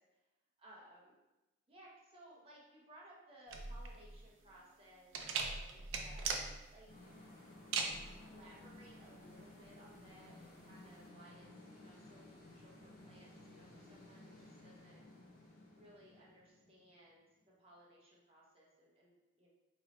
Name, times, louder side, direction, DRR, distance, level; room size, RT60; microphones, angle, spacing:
voice 1, 0.6-1.2 1.7-5.2 5.4-6.9 7.7-15.0 15.7-17.2 17.6-19.5, right 1 dB, 30° right, -5 dB, 0.8 m, -61 dB
sound 1, 3.5-11.0, right 4 dB, 80° right, 0.4 m, -41 dB
sound 2, 6.9-17.4, left 1 dB, 45° left, 0.8 m, -57 dB
3.0 x 2.7 x 4.1 m, 1.0 s
head